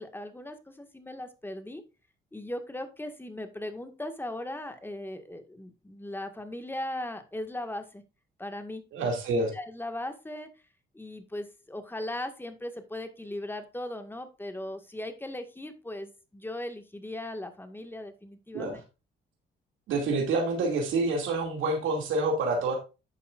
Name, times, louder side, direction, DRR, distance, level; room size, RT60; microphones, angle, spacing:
voice 1, 0.0-1.8 2.3-8.0 8.4-10.5 10.9-18.8, left 1 dB, 10° left, 7 dB, 1.7 m, -38 dB
voice 2, 8.9-9.5 18.5-18.8 19.9-22.7, right 2 dB, 80° right, 1 dB, 2.4 m, -27 dB
10.5 x 6.9 x 2.5 m, 0.29 s
cardioid pair, 90°, 20 cm